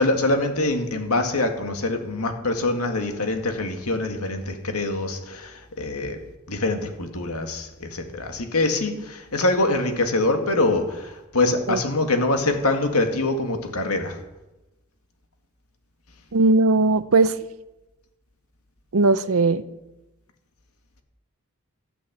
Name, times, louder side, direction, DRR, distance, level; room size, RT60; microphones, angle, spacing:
voice 1, 0.0-6.2 6.5-14.2, left 2 dB, 90° left, 5 dB, 2.0 m, -24 dB
voice 2, 16.3-17.3 18.9-19.6, right 3 dB, 75° right, 14 dB, 0.7 m, -18 dB
13.0 x 9.0 x 8.1 m, 1.0 s
head